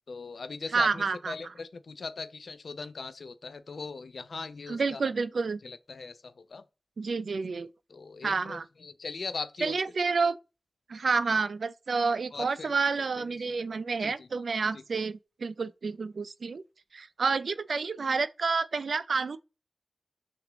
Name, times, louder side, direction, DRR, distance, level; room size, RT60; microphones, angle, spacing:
voice 1, 0.1-5.1 5.6-6.6 7.9-9.8 12.3-12.7 13.2-13.5 14.0-14.3 14.7-14.8, left 4 dB, 80° left, 0.5 m, -40 dB
voice 2, 0.7-1.3 4.7-5.6 7.0-7.7 8.2-8.6 9.6-10.4 10.9-16.6 16.9-19.4, right 4 dB, 85° right, 0.3 m, -29 dB
6.0 x 2.5 x 3.0 m
wide cardioid pair, 100°, 0 cm